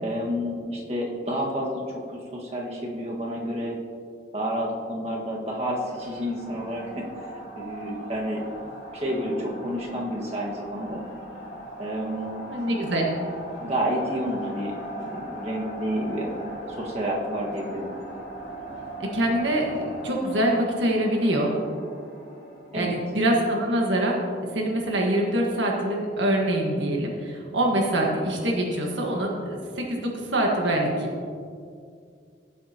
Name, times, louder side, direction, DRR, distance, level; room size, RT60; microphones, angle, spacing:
voice 1, 0.0-3.8 4.3-8.5 8.9-11.0 11.8-12.4 13.6-17.9 22.7-23.0, equal, 35° right, -3 dB, 1.6 m, -30 dB
sound 1, 5.7-23.4, right 1 dB, 85° left, 2.2 m, -40 dB
voice 2, 12.5-13.1 19.0-21.5 22.7-24.2 24.5-31.1, right 1 dB, 85° right, 0 dB, 1.5 m, -24 dB
16.5 x 7.5 x 2.9 m, 2.3 s
head